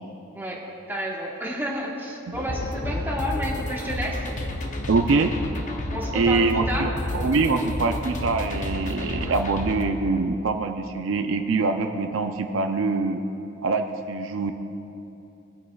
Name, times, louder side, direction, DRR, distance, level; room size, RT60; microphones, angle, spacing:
voice 1, 0.3-4.2 5.9-6.9, equal, 10° right, -3 dB, 1.3 m, -31 dB
sound 1, 2.3-9.8, left 1 dB, 40° left, 0.7 m, -31 dB
voice 2, 4.9-5.3 6.1-13.2 13.6-14.5, right 3 dB, 70° right, 5 dB, 0.5 m, -24 dB
18.5 x 8.5 x 2.3 m, 2.9 s
head